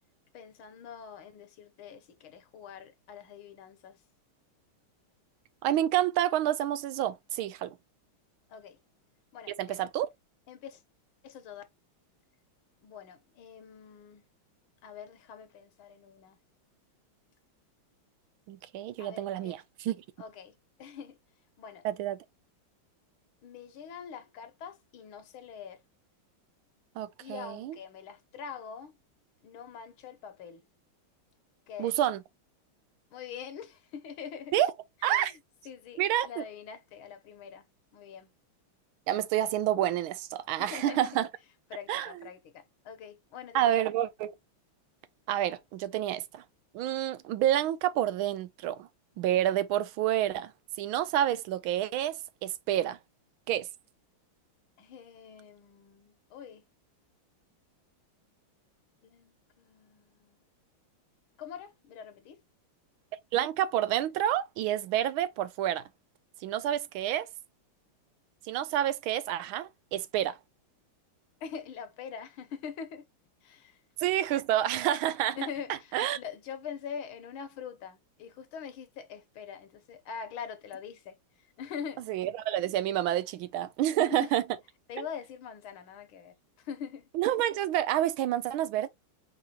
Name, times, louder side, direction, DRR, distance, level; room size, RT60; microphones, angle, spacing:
voice 1, 0.3-4.0 8.5-8.8 9.3-9.8 10.5-10.8 11.2-11.6 12.8-14.3 14.8-16.4 19.0-19.6 20.2-21.2 21.6-21.9 23.4-25.8 27.2-28.9 29.4-30.6 31.7-32.0 33.1-34.5 35.0-35.4 35.7-37.7 37.9-38.3 40.6-41.1 41.7-43.9 54.8-56.6 59.0-60.4 61.4-62.4 71.4-73.1 73.4-73.8 75.4-82.0 84.0-84.3 84.9-87.1, left 7 dB, 75° left, 1.7 m, -44 dB
voice 2, 5.6-7.7 9.6-10.1 18.5-20.0 21.8-22.2 27.0-27.7 31.8-32.2 34.5-34.7 35.0-35.3 36.0-36.4 39.1-41.3 41.9-42.1 43.5-44.3 45.3-46.4 46.7-48.9 49.2-50.5 50.8-53.0 53.5-53.7 63.3-65.8 66.4-67.3 68.4-70.4 74.0-75.4 75.9-76.2 82.1-84.4 85.0-85.1 87.1-88.9, right 12 dB, 80° right, 1.4 m, -28 dB
4.8 x 3.8 x 2.9 m
omnidirectional pair, 2.3 m